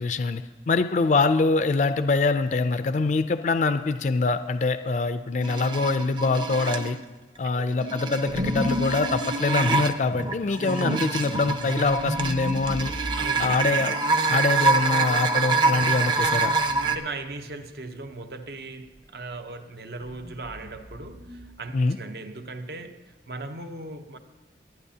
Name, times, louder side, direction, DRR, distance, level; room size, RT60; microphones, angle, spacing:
voice 1, 0.0-7.0 7.4-12.9 13.4-13.9 14.3-16.5 21.7-22.0, left 3 dB, 45° left, 0.3 m, -24 dB
sound 1, 5.4-7.0 7.7-17.0, right 3 dB, 25° right, 0.5 m, -26 dB
sound 2, 8.3-13.4 16.1-16.9 17.1-17.6 20.0-21.5, left 1 dB, 50° right, 1.2 m, -34 dB
voice 2, 13.2-13.6 14.3-14.4 16.8-24.2, right 2 dB, 65° right, 0.8 m, -38 dB
27.5 x 9.4 x 2.8 m
head